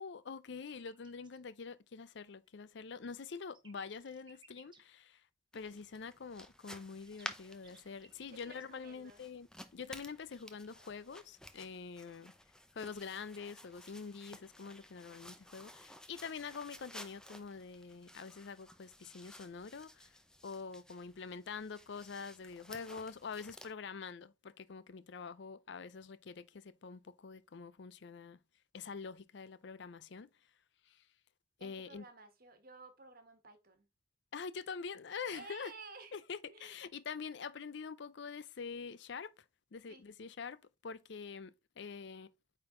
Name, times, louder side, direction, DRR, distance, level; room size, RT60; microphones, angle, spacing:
voice 1, 0.0-5.3 5.5-12.3 12.7-20.2 20.4-28.4 28.7-30.3 30.9-31.1 31.6-32.1 34.3-35.7 36.1-39.4 39.7-42.3, left 5 dB, 70° left, 0.5 m, -46 dB
sound 1, 0.6-1.4 2.7-4.8 6.6-8.6, right 5 dB, 25° right, 1.1 m, -64 dB
sound 2, 5.5-23.7, left 1 dB, 5° left, 0.6 m, -54 dB
voice 2, 8.2-9.2 31.6-33.9 35.3-36.2 36.5-36.8 39.9-40.0, right 4 dB, 50° right, 1.5 m, -54 dB
8.8 x 3.9 x 3.7 m
head